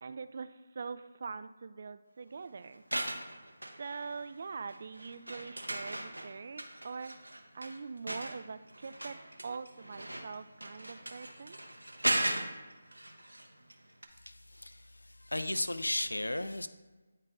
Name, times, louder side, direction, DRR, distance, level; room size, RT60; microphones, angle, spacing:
voice 1, 0.0-2.8 3.8-7.1 7.5-9.2 9.4-11.6, right 5 dB, 50° right, 12 dB, 0.3 m, -43 dB
sound 1, 2.7-4.4 4.7-13.7 14.0-14.1, right 1 dB, 90° right, 0.8 m, -38 dB
voice 2, 14.3-14.9 15.2-16.7, left 1 dB, 85° left, 11 dB, 0.5 m, -34 dB
9.5 x 4.5 x 2.5 m, 1.2 s
figure-of-eight pair, 155°, 0 cm